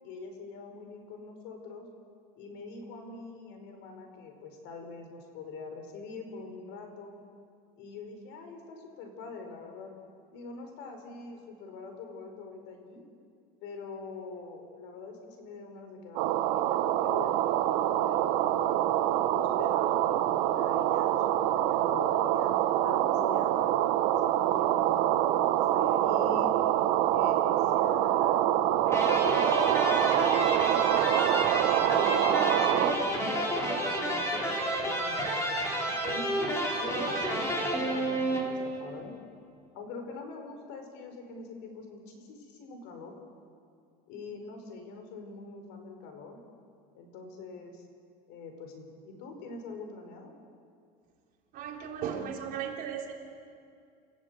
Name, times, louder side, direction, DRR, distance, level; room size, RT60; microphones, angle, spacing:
voice 1, 0.0-1.9 2.3-7.1 7.8-9.9 10.3-13.0 13.6-18.8 19.3-22.5 22.8-26.6 27.1-28.5 28.9-33.2 33.7-39.1 39.7-43.1 44.1-46.4 46.9-47.8 48.3-50.3, left 4 dB, 70° left, 5 dB, 5.1 m, -44 dB
sound 1, 16.2-32.9, right 13 dB, 75° right, 1.4 m, -26 dB
sound 2, 28.9-38.8, right 1 dB, 15° left, 4.2 m, -30 dB
voice 2, 51.5-53.1, right 8 dB, 45° right, 0 dB, 3.7 m, -36 dB
29.0 x 16.0 x 8.3 m, 2.4 s
cardioid pair, 150°, 20 cm